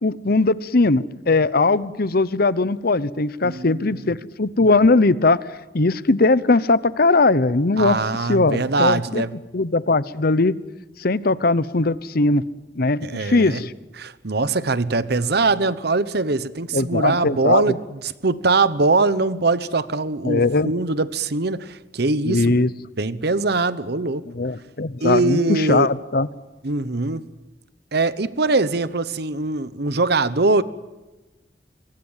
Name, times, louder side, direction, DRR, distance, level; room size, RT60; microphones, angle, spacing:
voice 1, 0.0-5.4 5.7-9.2 9.5-10.6 11.0-12.4 12.8-13.7 16.7-17.6 20.2-20.7 22.2-22.7 24.3-26.3, left 3 dB, 55° left, 17 dB, 0.9 m, -19 dB
voice 2, 3.4-3.9 7.8-9.3 13.0-13.6 14.0-22.6 23.0-24.2 25.0-25.9 26.6-27.2 27.9-30.6, right 3 dB, 65° right, 15 dB, 1.1 m, -22 dB
26.0 x 24.0 x 7.4 m, 1.1 s
head